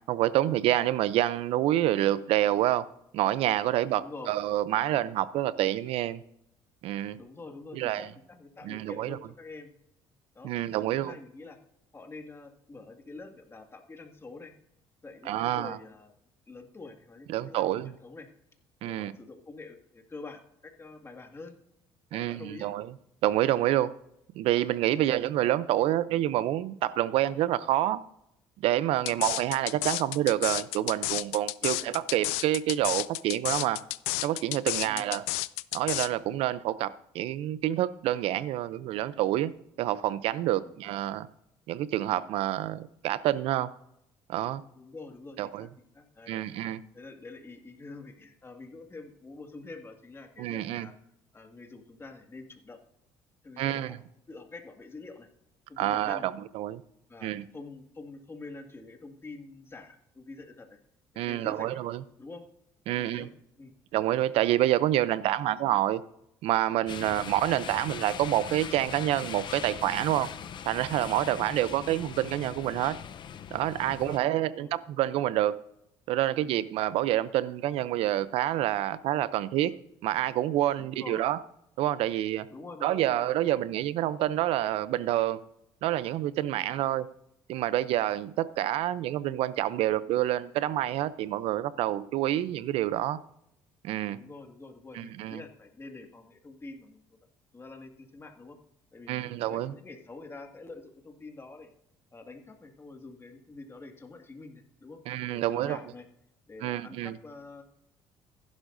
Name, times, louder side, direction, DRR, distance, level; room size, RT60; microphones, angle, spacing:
voice 1, 0.1-2.9 3.1-6.2 6.8-7.2 7.7-8.1 8.6-9.2 10.4-11.1 15.3-15.8 17.3-17.9 18.8-19.1 22.1-22.9 23.2-23.9 24.3-28.0 28.6-33.8 34.2-35.3 35.7-39.5 39.8-41.3 41.7-43.7 44.3-44.6 45.4-45.7 46.3-46.8 50.4-50.9 53.6-54.0 55.8-56.8 57.2-57.4 61.2-62.0 62.9-63.3 63.9-66.0 66.4-70.3 70.7-73.0 73.5-75.5 76.1-79.7 80.0-81.4 81.8-82.5 82.8-85.4 85.8-87.1 87.5-93.2 93.8-94.2 94.9-95.4 99.1-99.7 105.1-105.8 106.6-107.1, right 13 dB, 75° right, 16 dB, 0.6 m, -27 dB
voice 2, 3.9-4.4 7.2-9.7 10.3-11.6 11.9-14.5 15.0-16.1 16.5-18.3 18.8-21.5 22.1-22.7 24.9-25.1 29.0-29.2 31.6-32.0 34.8-35.1 44.7-45.7 45.9-46.5 46.9-50.9 51.3-52.8 53.4-54.0 54.3-55.3 55.7-56.3 57.1-60.8 61.1-61.8 62.2-62.5 62.9-63.3 63.6-63.7 67.0-67.3 73.8-74.8 76.4-76.6 80.7-81.3 82.5-83.3 94.1-97.2 97.5-98.6 98.9-101.7 102.1-105.0 105.3-106.1 106.5-107.6, left 3 dB, 25° left, 3 dB, 2.0 m, -46 dB
sound 1, 29.1-36.1, left 21 dB, 85° left, 0.4 m, -31 dB
sound 2, 66.9-74.2, left 8 dB, 50° left, 0.7 m, -41 dB
15.0 x 11.5 x 2.6 m, 0.78 s
supercardioid pair, 80°, 10 cm